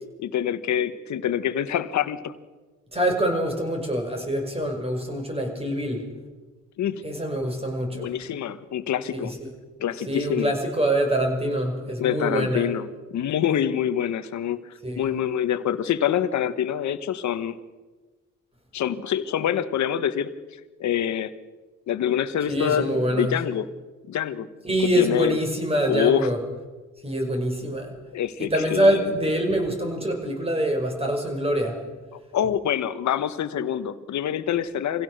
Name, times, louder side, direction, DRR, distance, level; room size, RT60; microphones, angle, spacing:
voice 1, 0.2-2.3 6.8-7.0 7.9-9.3 9.8-10.5 12.0-14.7 15.0-17.6 18.7-20.3 20.8-21.3 21.9-23.6 24.1-24.5 25.0-25.4 25.9-26.3 28.1-29.1 32.3-35.0, left 9 dB, 70° left, 12 dB, 1.4 m, -25 dB
voice 2, 2.9-6.0 7.0-8.1 9.1-9.5 10.1-12.7 14.8-15.2 22.5-23.4 24.6-26.4 27.0-27.9 28.4-31.8, right 1 dB, 20° right, 3 dB, 5.8 m, -25 dB
25.5 x 16.5 x 6.7 m, 1.3 s
cardioid pair, 90°, 30 cm